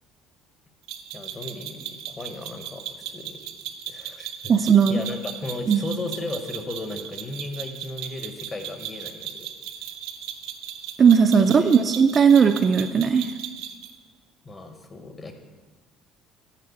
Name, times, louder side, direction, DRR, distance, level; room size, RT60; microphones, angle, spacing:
sound 1, 0.9-13.9, right 10 dB, 90° right, 0.6 m, -37 dB
voice 1, 1.1-3.4 3.9-4.3 4.9-9.5 11.4-11.8 14.4-15.3, left 2 dB, 20° left, 6 dB, 0.8 m, -35 dB
voice 2, 4.5-5.0 5.7-5.8 11.0-13.3, right 6 dB, 25° right, 6 dB, 0.3 m, -17 dB
10.0 x 4.9 x 6.9 m, 1.4 s
cardioid pair, 160°, 0 cm